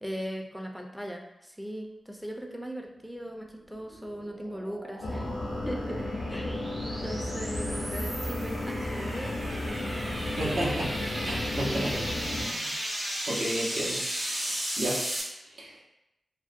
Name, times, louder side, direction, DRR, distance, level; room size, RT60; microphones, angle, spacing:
voice 1, 0.0-5.3 5.6-6.6 7.0-9.3 9.7-10.8 11.6-12.1, equal, ahead, 1 dB, 0.3 m, -39 dB
sound 1, 3.5-15.2, right 1 dB, 55° right, 1.1 m, -36 dB
sound 2, 5.0-12.5, left 1 dB, 80° left, 0.4 m, -33 dB
voice 2, 10.4-10.9 11.2-11.9 12.4-12.7 13.3-14.0 14.3-15.0 15.6-15.7, right 1 dB, 80° right, -5 dB, 0.7 m, -32 dB
2.6 x 2.1 x 2.4 m, 0.88 s
cardioid pair, 55°, 0 cm